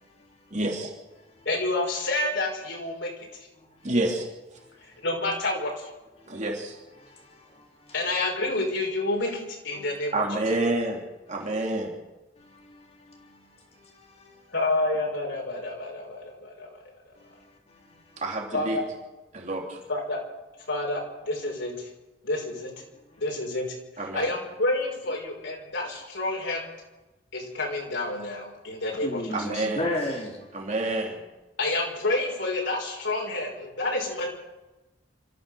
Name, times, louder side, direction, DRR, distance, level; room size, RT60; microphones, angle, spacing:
voice 1, 0.5-0.9 3.8-4.3 6.3-6.8 10.1-11.0 11.3-11.9 18.2-18.8 19.3-19.8 24.0-24.3 29.3-29.9 30.5-31.2, right 2 dB, 40° right, 3.0 m, -28 dB
voice 2, 1.4-3.1 5.0-5.9 7.9-10.2 14.5-16.8 18.5-18.8 19.9-20.2 20.7-21.9 22.2-22.7 23.2-23.8 24.1-26.7 27.3-29.7 31.6-34.3, left 2 dB, 90° left, 6.1 m, -29 dB
voice 3, 7.0-7.6 9.7-9.9 12.6-13.4 13.8-14.4 29.0-30.4, left 1 dB, 35° left, 3.6 m, -34 dB
26.5 x 14.5 x 6.9 m
head